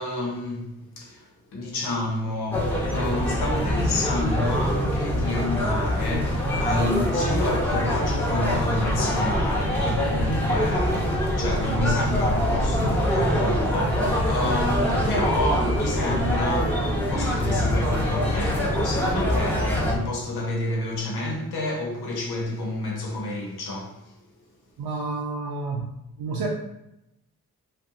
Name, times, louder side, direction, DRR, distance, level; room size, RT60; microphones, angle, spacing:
voice 1, 0.0-24.1, left 1 dB, 80° left, 0.9 m, -29 dB
sound 1, 2.5-20.0, equal, 5° left, 1.1 m, -24 dB
voice 2, 24.8-25.9 26.2-26.5, right 3 dB, 80° right, 0.6 m, -30 dB
2.7 x 2.2 x 3.6 m
supercardioid pair, 45°, 38 cm